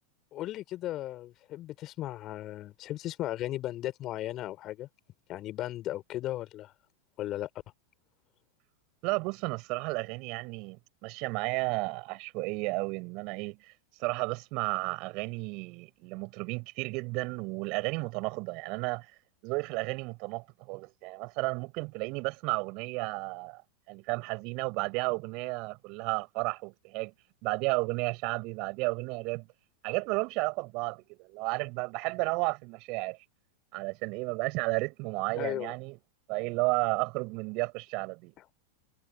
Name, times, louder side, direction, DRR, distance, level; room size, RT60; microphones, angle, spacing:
voice 1, 0.3-4.9 5.3-6.7 7.2-7.5 35.4-35.7 38.4-38.5, left 14 dB, 35° left, 5.0 m, -36 dB
voice 2, 9.0-13.6 14.0-19.1 19.4-23.6 23.9-27.1 27.4-29.5 29.8-33.2 33.7-36.0 36.3-38.3, right 28 dB, 45° right, 7.2 m, -33 dB
figure-of-eight pair, 90°, 0 cm